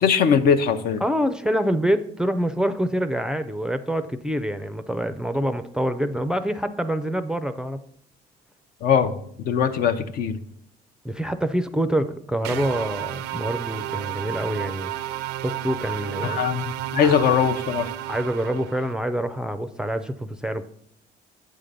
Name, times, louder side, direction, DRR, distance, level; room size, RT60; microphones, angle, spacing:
voice 1, 0.0-1.0 8.8-9.2 9.4-10.4 16.2-16.6 16.9-17.9, left 7 dB, 65° left, 9 dB, 0.7 m, -20 dB
voice 2, 1.0-7.8 11.0-14.9 15.4-16.4 17.0-17.1 18.1-20.7, equal, 5° right, 10 dB, 0.4 m, -26 dB
sound 1, 12.4-18.9, right 14 dB, 85° right, 0.4 m, -32 dB
8.4 x 3.8 x 6.7 m, 0.68 s
cardioid pair, 110°, 17 cm